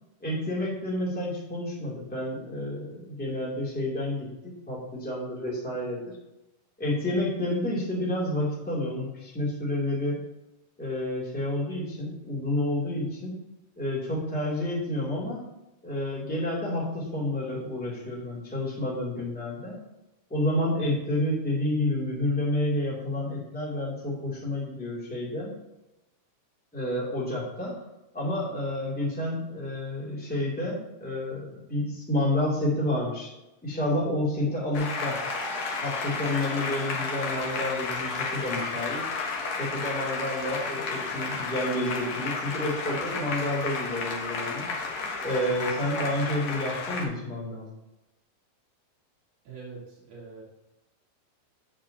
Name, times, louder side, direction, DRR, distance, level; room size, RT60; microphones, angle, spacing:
voice 1, 0.2-6.2 6.8-10.2 10.8-13.4 13.8-15.4 15.8-19.8 20.3-25.6 26.7-27.8 28.1-33.3 33.6-35.2 35.8-39.1 39.5-44.7 45.2-47.7, left 1 dB, 5° left, -6 dB, 2.0 m, -29 dB
Applause, 34.7-47.0, left 4 dB, 60° left, 1.9 m, -32 dB
Crow, 37.3-47.1, left 7 dB, 75° left, 2.0 m, -45 dB
voice 2, 49.5-50.4, right 4 dB, 70° right, -6 dB, 3.8 m, -43 dB
8.8 x 8.0 x 2.9 m, 0.96 s
omnidirectional pair, 4.3 m